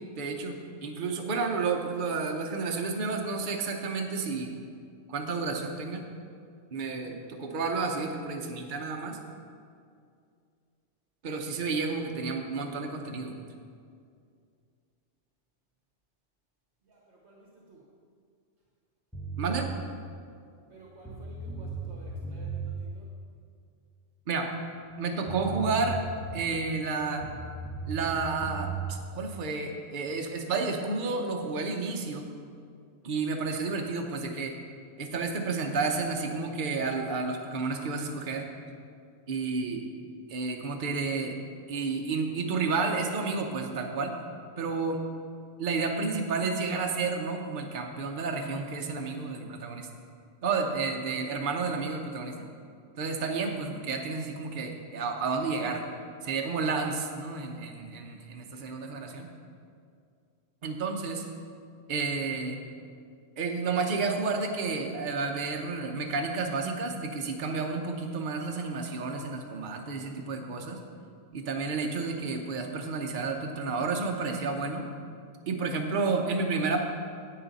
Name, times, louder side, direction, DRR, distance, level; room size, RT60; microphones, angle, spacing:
voice 1, 0.2-4.5 5.1-6.1 6.7-9.2 11.2-13.3 19.4-19.7 24.3-24.5 25.0-26.0 26.3-27.2 27.9-32.3 33.0-34.5 35.0-38.5 39.3-39.9 40.3-41.3 41.7-44.1 44.6-45.0 45.6-49.9 50.4-52.5 53.0-55.8 56.2-59.3 60.6-61.3 61.9-62.6 63.4-70.8 71.3-74.9 75.5-76.8, right 4 dB, 45° right, 2 dB, 0.9 m, -31 dB
voice 2, 16.9-17.8 20.7-23.0, right 2 dB, 65° right, -2 dB, 1.3 m, -52 dB
sound 1, 19.1-19.7 20.7-20.8 21.0-22.7 24.9-25.0 25.3-26.5 27.2-28.9, right 5 dB, ahead, 1.0 m, -36 dB
9.9 x 8.6 x 4.1 m, 2.3 s
omnidirectional pair, 1.3 m